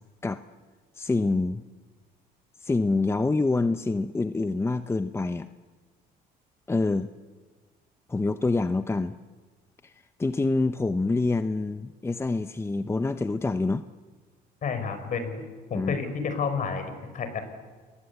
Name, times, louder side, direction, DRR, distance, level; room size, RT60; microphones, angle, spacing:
voice 1, 0.9-1.6 2.6-5.5 6.7-7.1 8.1-9.1 9.8-9.9 10.2-13.8 15.7-16.0, left 3 dB, 15° left, 11 dB, 0.8 m, -26 dB
voice 2, 14.6-15.4 15.7-17.4, left 5 dB, 50° left, 9 dB, 5.2 m, -30 dB
30.0 x 21.0 x 8.3 m, 1.4 s
cardioid pair, 110°, 17 cm